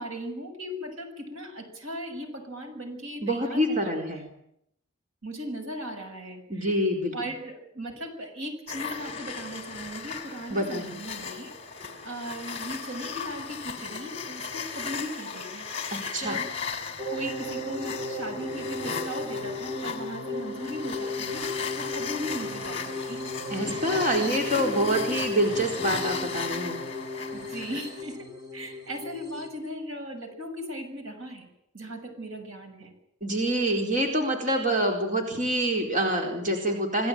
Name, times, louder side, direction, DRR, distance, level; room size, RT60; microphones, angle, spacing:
voice 1, 0.0-3.9 5.2-6.7 7.1-15.7 16.2-16.5 17.1-23.2 23.7-23.9 24.2-25.2 27.3-31.5 31.7-32.9, equal, 85° right, 5 dB, 6.5 m, -38 dB
voice 2, 3.2-4.3 6.5-7.1 10.5-11.0 15.9-16.4 23.5-26.8 33.2-37.1, right 1 dB, 40° right, 2 dB, 4.4 m, -26 dB
sound 1, 8.7-28.0, left 5 dB, 30° left, 3.4 m, -36 dB
sound 2, 17.0-29.5, left 2 dB, 20° right, 3.4 m, -35 dB
27.0 x 17.0 x 9.0 m, 0.75 s
head